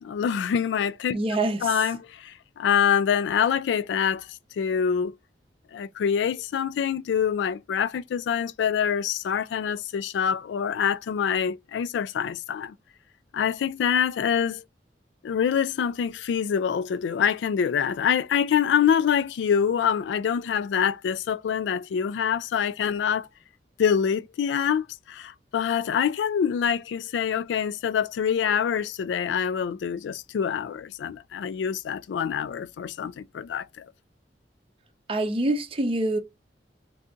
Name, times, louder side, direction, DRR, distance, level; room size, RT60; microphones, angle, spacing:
voice 1, 0.0-1.2 1.6-4.3 4.6-5.1 5.7-12.8 13.3-14.6 15.2-23.3 23.8-33.9, left 7 dB, 80° left, 0.3 m, -25 dB
voice 2, 1.1-1.8 35.1-36.2, right 2 dB, 30° right, 0.5 m, -25 dB
2.7 x 2.5 x 3.5 m
head